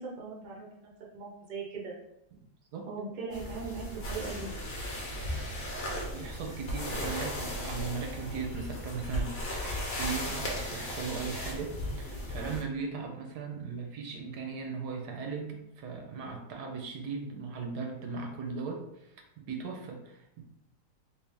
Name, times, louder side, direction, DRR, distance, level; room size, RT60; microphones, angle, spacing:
voice 1, 0.0-1.9 2.9-4.5, right 4 dB, 45° right, -2 dB, 0.7 m, -39 dB
sound 1, 3.3-12.6, left 1 dB, 50° left, 0.8 m, -36 dB
voice 2, 6.0-9.5 10.0-20.4, right 5 dB, 80° right, 2 dB, 1.2 m, -38 dB
3.3 x 2.7 x 3.3 m, 0.84 s
omnidirectional pair, 1.8 m